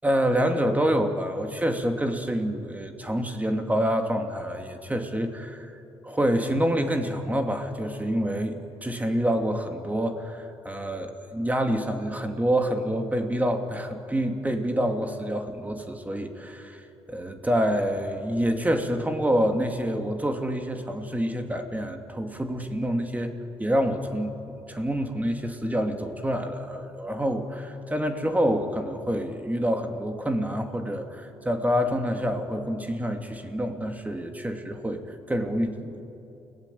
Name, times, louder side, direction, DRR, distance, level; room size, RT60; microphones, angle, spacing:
voice 1, 0.0-5.7 6.0-16.8 17.1-23.3 23.6-24.3 24.7-36.0, equal, 15° right, 5 dB, 2.6 m, -27 dB
29.5 x 18.5 x 8.6 m, 2.8 s
cardioid pair, 75°, 11 cm